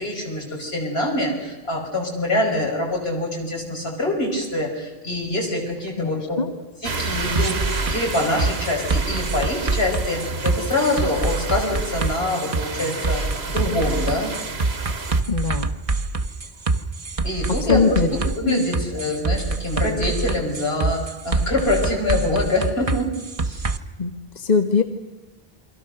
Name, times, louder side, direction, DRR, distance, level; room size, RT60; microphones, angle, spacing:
voice 1, 0.0-6.4 6.8-13.2 13.5-14.3 17.2-23.1 23.4-23.6, left 1 dB, 75° left, 0 dB, 5.8 m, -25 dB
voice 2, 6.0-6.5 15.3-15.7 17.6-18.1 18.4-18.6 24.0-24.8, left 5 dB, 45° left, 7 dB, 1.2 m, -22 dB
sound 1, 6.8-15.2, right 3 dB, 80° right, 1.8 m, -31 dB
sound 2, 7.4-23.8, right 3 dB, 35° right, 1.0 m, -25 dB
28.5 x 23.0 x 6.7 m, 1.1 s
omnidirectional pair, 1.0 m